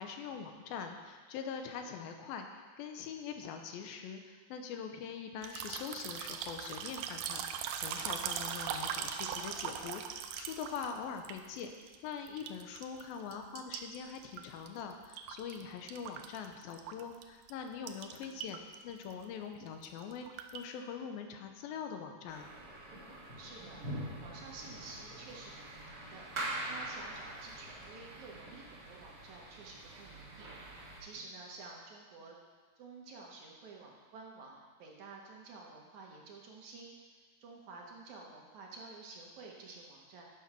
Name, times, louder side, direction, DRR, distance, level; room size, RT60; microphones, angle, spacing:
voice 1, 0.0-11.7 12.0-18.6 18.8-22.5, left 6 dB, 90° left, 5 dB, 2.6 m, -43 dB
sound 1, 5.4-12.0 12.3-13.0 13.3-15.6 15.9-17.2 17.5-17.6 17.9-18.8 19.0-19.2 19.7-20.6, right 8 dB, 80° right, 2.1 m, -40 dB
sound 2, 22.3-31.0, right 1 dB, 35° right, 2.1 m, -44 dB
voice 2, 23.4-30.5 31.0-32.4 32.8-36.9 37.4-40.2, right 3 dB, 65° right, -2 dB, 2.2 m, -51 dB
9.8 x 6.1 x 6.0 m, 1.4 s
omnidirectional pair, 4.1 m